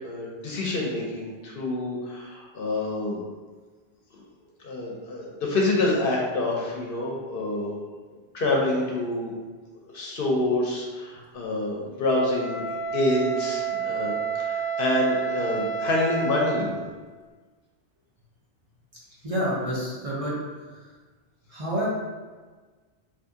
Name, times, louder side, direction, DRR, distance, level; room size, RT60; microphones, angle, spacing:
voice 1, 0.0-3.2 4.6-7.7 8.3-9.3 9.9-12.6 12.9-16.8, left 2 dB, 60° left, -2 dB, 0.7 m, -27 dB
Wind instrument woodwind instrument, 12.1-16.7, right 6 dB, 55° right, 1.0 m, -29 dB
voice 2, 19.2-20.3 20.7-20.9 21.5-21.9, equal, 35° right, -8 dB, 0.7 m, -28 dB
2.7 x 2.6 x 3.5 m, 1.4 s
omnidirectional pair, 1.1 m